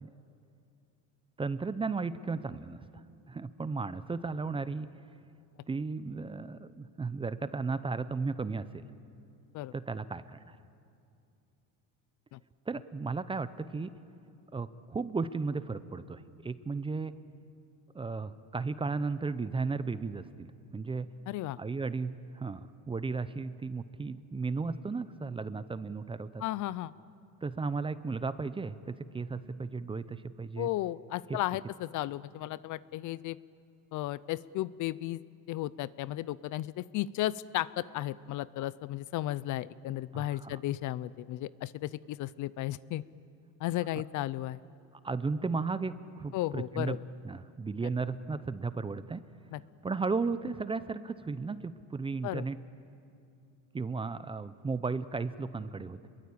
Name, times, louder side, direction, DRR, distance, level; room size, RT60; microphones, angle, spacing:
voice 1, 1.4-4.9 5.7-8.8 9.7-10.6 12.7-13.9 14.5-17.1 17.9-20.5 20.7-21.1 21.6-26.4 27.4-30.7 40.1-40.6 45.0-47.0 47.2-49.2 49.8-52.6 53.7-56.1, right 4 dB, 15° right, 14 dB, 0.6 m, -35 dB
voice 2, 21.3-21.6 26.4-26.9 30.6-33.4 33.9-35.2 35.5-43.0 43.6-44.6 46.3-47.0 49.5-49.6 52.2-52.4, left 15 dB, 55° left, 19 dB, 0.6 m, -34 dB
29.0 x 22.5 x 8.6 m, 2.5 s
cardioid pair, 135°, 37 cm